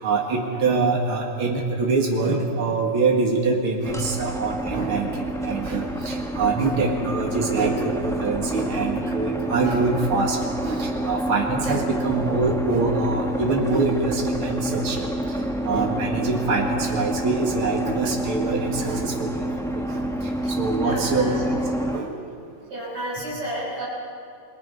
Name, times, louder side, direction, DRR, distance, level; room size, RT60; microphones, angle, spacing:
voice 1, 0.0-10.4 10.6-15.1 15.6-19.4 19.7-21.3 21.9-22.2, right 3 dB, 80° right, 0 dB, 2.8 m, -24 dB
sound 1, 3.8-22.0, right 1 dB, ahead, 0.9 m, -28 dB
voice 2, 20.8-21.4 22.7-23.8, right 1 dB, 50° right, -8 dB, 6.3 m, -32 dB
28.5 x 22.0 x 5.4 m, 2.4 s
omnidirectional pair, 2.3 m